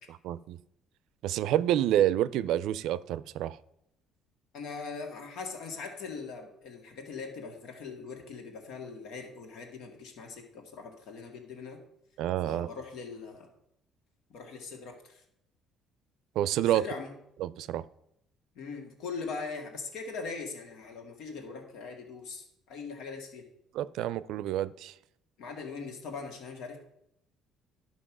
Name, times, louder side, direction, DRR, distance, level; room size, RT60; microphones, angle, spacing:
voice 1, 0.1-0.6 1.2-3.6 12.2-12.7 16.4-16.8 17.4-17.8 23.7-24.9, right 12 dB, 75° right, 0.4 m, -28 dB
voice 2, 4.5-11.8 12.4-13.5 14.3-15.2 16.6-17.1 18.6-23.5 25.4-26.8, left 4 dB, 75° left, 2.1 m, -41 dB
11.5 x 5.5 x 6.1 m
cardioid pair, 95°, 0 cm